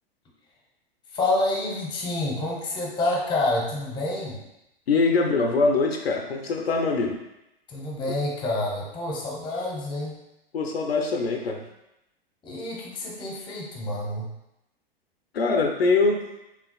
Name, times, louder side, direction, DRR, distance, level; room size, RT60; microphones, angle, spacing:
voice 1, 1.1-4.4 7.7-10.2 12.4-14.3, left 2 dB, 15° left, -2 dB, 0.9 m, -28 dB
voice 2, 4.9-7.2 10.5-11.6 15.3-16.2, left 3 dB, 75° left, 3 dB, 0.6 m, -23 dB
5.8 x 2.4 x 2.3 m, 0.89 s
figure-of-eight pair, 105°, 30 cm